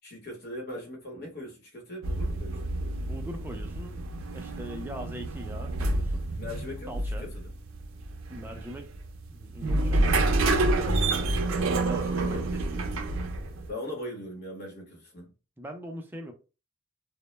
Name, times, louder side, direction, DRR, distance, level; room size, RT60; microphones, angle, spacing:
voice 1, 0.0-2.6 6.4-7.4 12.2-12.5 13.7-15.3, left 1 dB, 55° left, 0.9 m, -40 dB
sound 1, 2.0-13.7, right 2 dB, 90° right, 0.4 m, -28 dB
voice 2, 3.0-4.0 4.3-6.3 6.9-7.3 8.3-8.9 9.3-11.2 11.7-12.9 15.6-16.3, equal, 10° right, 0.4 m, -41 dB
2.1 x 2.0 x 3.0 m
head